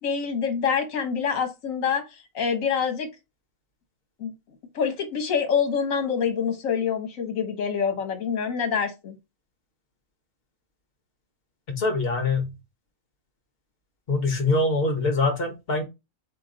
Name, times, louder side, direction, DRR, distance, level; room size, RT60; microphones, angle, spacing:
voice 1, 0.0-3.1 4.2-4.3 4.7-9.2, left 6 dB, 70° left, 1.4 m, -26 dB
voice 2, 11.7-12.5 14.1-15.8, left 3 dB, 45° left, 1.2 m, -24 dB
4.4 x 3.0 x 3.8 m
omnidirectional pair, 1.5 m